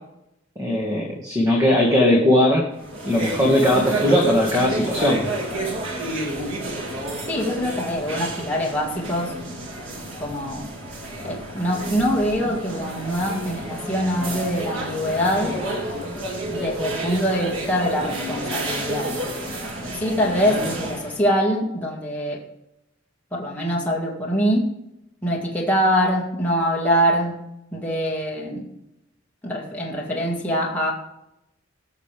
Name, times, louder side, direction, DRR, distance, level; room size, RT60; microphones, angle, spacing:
voice 1, 0.6-2.7 3.0-5.2, left 1 dB, 20° right, -1 dB, 1.8 m, -19 dB
sound 1, 2.8-21.2, right 1 dB, 85° right, 2.5 m, -30 dB
voice 2, 7.3-9.4 10.2-10.7 11.2-15.6 16.5-19.1 20.0-22.4 23.3-24.7 25.2-28.7 29.4-30.9, equal, 10° left, -4 dB, 2.2 m, -24 dB
19.0 x 6.7 x 3.5 m, 0.84 s
head